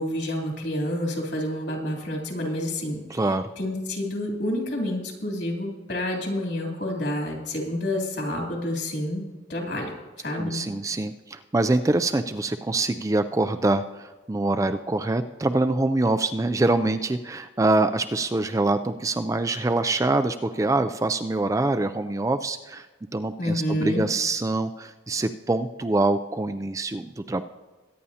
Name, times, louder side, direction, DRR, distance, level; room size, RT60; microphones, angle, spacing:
voice 1, 0.0-9.2 9.5-9.9 10.2-10.6 23.4-24.1, left 1 dB, 60° left, 0 dB, 3.1 m, -29 dB
voice 2, 3.1-3.4 10.4-22.9 23.1-27.4, right 2 dB, 15° right, 8 dB, 0.3 m, -25 dB
22.5 x 9.7 x 2.8 m, 1.2 s
head